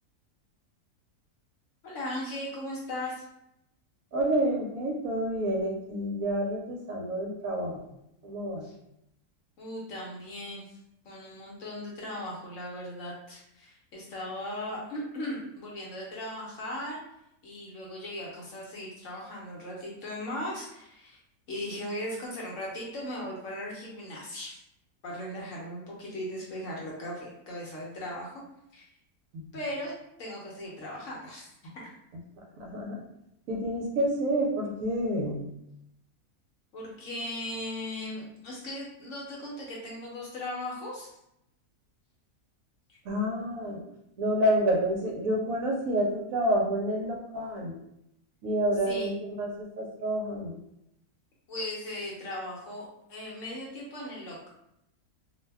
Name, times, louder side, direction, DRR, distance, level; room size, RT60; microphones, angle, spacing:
voice 1, 1.8-3.2 8.6-8.7 9.6-10.8 11.0-17.0 17.4-21.2 21.5-24.6 25.0-28.4 28.7-28.9 29.5-31.5 36.7-41.1 42.9-43.0 48.9-49.1 51.5-54.5, left 1 dB, 60° left, -4 dB, 0.9 m, -38 dB
voice 2, 4.1-7.8 8.2-8.7 29.3-29.5 32.6-33.0 33.5-35.5 43.0-43.8 44.2-47.8 48.4-50.6, right 1 dB, 70° right, -1 dB, 1.0 m, -29 dB
2.6 x 2.1 x 3.3 m, 0.80 s
omnidirectional pair, 1.7 m